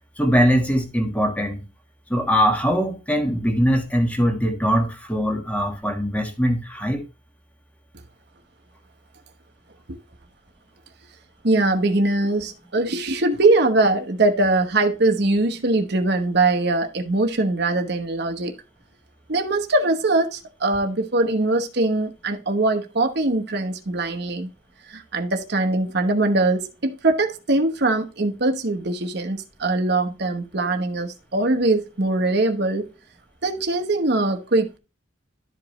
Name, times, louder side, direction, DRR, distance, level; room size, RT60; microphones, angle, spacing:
voice 1, 0.2-1.6 2.1-7.0, equal, 10° left, 1.4 m, -21 dB
voice 2, 11.4-18.5 19.3-24.5 24.9-32.9 33.4-34.8, right 2 dB, 55° right, 1.1 m, -22 dB
12.0 x 4.9 x 3.1 m
head